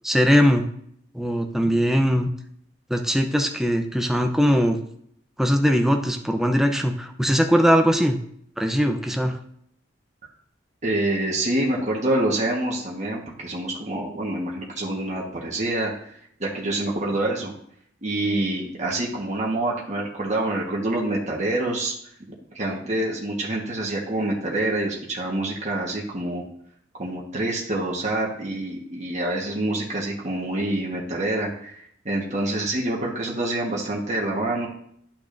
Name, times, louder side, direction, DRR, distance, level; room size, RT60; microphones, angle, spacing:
voice 1, 0.0-0.6 1.1-2.3 2.9-4.8 5.4-8.2 8.6-9.4, equal, ahead, 4 dB, 0.6 m, -20 dB
voice 2, 10.8-16.1 16.4-17.5 18.0-21.9 22.5-26.4 27.0-34.7, right 1 dB, 40° right, -3 dB, 1.3 m, -26 dB
11.5 x 5.9 x 2.6 m, 0.68 s
head